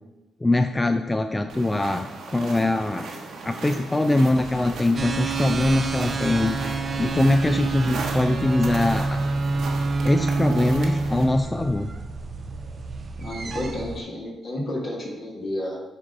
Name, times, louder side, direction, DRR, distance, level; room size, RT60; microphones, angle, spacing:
voice 1, 0.4-3.1 3.4-6.6 7.0-9.2 10.0-11.9, left 2 dB, 20° left, 8 dB, 0.3 m, -22 dB
sound 1, 1.5-11.2, right 3 dB, 75° right, 1.1 m, -37 dB
sound 2, 4.3-5.6, left 1 dB, 70° left, 2.1 m, -46 dB
sound 3, 5.0-14.0, right 3 dB, 50° right, 0.5 m, -27 dB
voice 2, 13.2-15.8, left 1 dB, 50° left, -2 dB, 1.4 m, -31 dB
7.7 x 2.6 x 5.1 m, 1.1 s
supercardioid pair, 55°, 0 cm